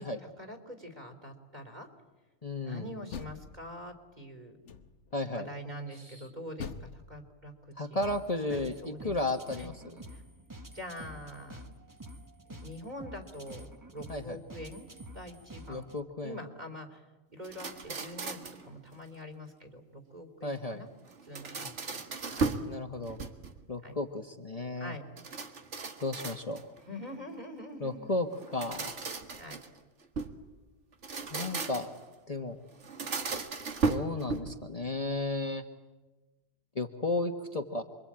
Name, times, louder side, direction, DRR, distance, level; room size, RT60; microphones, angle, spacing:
voice 1, 0.4-1.9 2.7-4.6 5.3-8.0 8.5-9.1 9.6-9.7 10.1-10.2 10.7-11.6 12.5-14.9 15.1-15.9 16.2-18.4 18.7-20.9 21.2-22.0 22.3-22.5 23.8-24.0 24.7-25.0 26.9-28.1 29.4-29.6, equal, 40° right, 6 dB, 3.5 m, -44 dB
voice 2, 2.4-2.9 5.1-5.5 7.8-10.0 14.1-14.4 15.7-16.4 20.4-20.8 22.7-23.2 23.7-24.9 26.0-26.6 27.8-29.0 31.3-31.9 32.3-32.6 33.9-35.6 36.7-37.8, left 2 dB, 35° left, 5 dB, 1.3 m, -34 dB
Door, 2.8-4.1 4.6-5.2 6.6-8.5, left 6 dB, 80° left, 1.5 m, -45 dB
sound 1, 8.0-16.0, right 1 dB, 15° right, 1.3 m, -48 dB
sound 2, 17.4-18.7 21.1-22.7 23.1-23.7 25.2-26.8 28.4-30.4 30.9-32.0 32.8-34.7, right 4 dB, 85° right, 2.0 m, -36 dB
28.0 x 23.0 x 8.8 m, 1.2 s
omnidirectional pair, 1.2 m